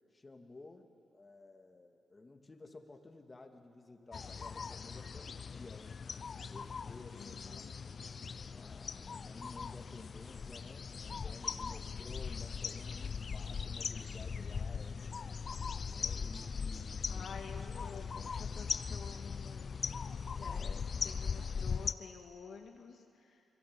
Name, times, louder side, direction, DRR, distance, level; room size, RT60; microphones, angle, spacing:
voice 1, 0.1-6.0 6.5-7.6 8.4-15.0 15.8-17.3 20.4-21.0, left 3 dB, 30° left, 4 dB, 2.6 m, -54 dB
sound 1, 4.1-21.9, left 5 dB, 55° left, 0.8 m, -40 dB
voice 2, 7.1-7.8 17.1-23.4, left 6 dB, 70° left, 3 dB, 2.0 m, -51 dB
26.0 x 21.5 x 9.0 m, 2.6 s
supercardioid pair, 55°, 0 cm